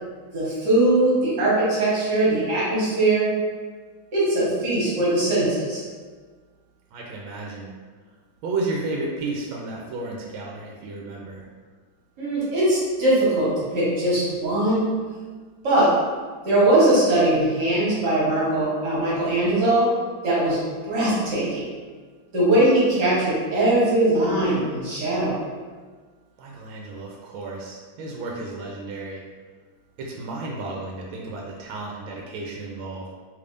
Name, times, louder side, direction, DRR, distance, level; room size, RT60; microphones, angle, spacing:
voice 1, 0.3-3.3 4.1-5.8 12.2-14.9 15.6-15.9 16.4-19.9 20.2-21.6 22.3-25.3, right 1 dB, 60° right, -8 dB, 1.7 m, -21 dB
voice 2, 6.9-7.7 8.4-11.4 26.4-29.2 30.0-33.0, right 3 dB, 80° right, -2 dB, 1.3 m, -32 dB
3.4 x 3.3 x 2.5 m, 1.5 s
omnidirectional pair, 2.2 m